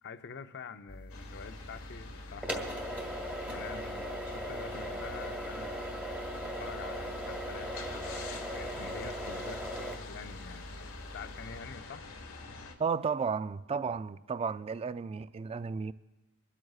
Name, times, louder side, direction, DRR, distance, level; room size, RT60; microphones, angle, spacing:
voice 1, 0.0-2.8 3.5-5.9 6.4-10.7 11.1-12.1, left 5 dB, 55° left, 0.6 m, -46 dB
sound 1, 0.9-11.6, equal, 5° right, 1.4 m, -39 dB
sound 2, 1.1-12.7, left 3 dB, 80° left, 1.3 m, -47 dB
voice 2, 12.8-15.9, right 5 dB, 30° right, 0.3 m, -33 dB
25.0 x 12.5 x 2.4 m
head